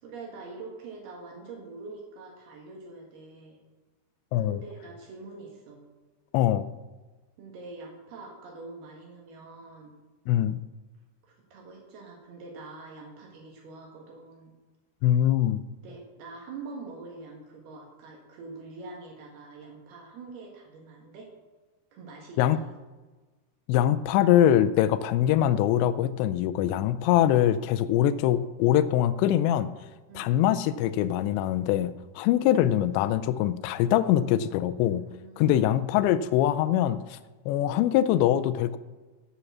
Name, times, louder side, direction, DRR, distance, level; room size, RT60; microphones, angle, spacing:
voice 1, 0.0-3.6 4.4-5.8 7.4-9.9 11.2-14.5 15.8-21.3 21.9-22.7 30.1-30.4 32.4-32.7 34.8-35.9, right 3 dB, 60° right, 0 dB, 3.2 m, -44 dB
voice 2, 6.3-6.7 10.3-10.6 15.0-15.6 22.4-22.6 23.7-29.7 30.2-35.0 35.4-37.2 37.5-38.8, left 11 dB, 85° left, 13 dB, 2.6 m, -23 dB
9.9 x 7.9 x 7.2 m, 1.3 s
omnidirectional pair, 5.7 m